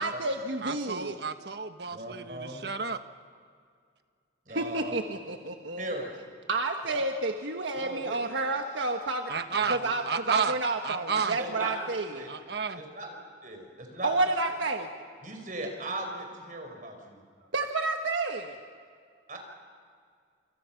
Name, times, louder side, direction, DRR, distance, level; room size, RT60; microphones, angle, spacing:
voice 1, 0.0-1.2 4.5-5.9 6.5-9.3 9.7-12.3 14.0-14.9 17.5-18.6, right 2 dB, 90° right, 4 dB, 1.5 m, -30 dB
voice 2, 0.6-3.0 9.3-9.8 10.0-10.6 10.8-11.4 12.3-12.8, right 5 dB, 65° right, 9 dB, 1.3 m, -31 dB
voice 3, 1.9-2.7 4.5-4.9 5.8-6.2 6.9-7.0 7.8-8.2 9.6-9.9 11.4-11.8 12.1-12.3 12.8-13.2 13.4-14.2 15.2-17.2 19.3-19.4, right 1 dB, 45° right, 3 dB, 5.1 m, -38 dB
29.0 x 28.0 x 5.9 m, 2.1 s
head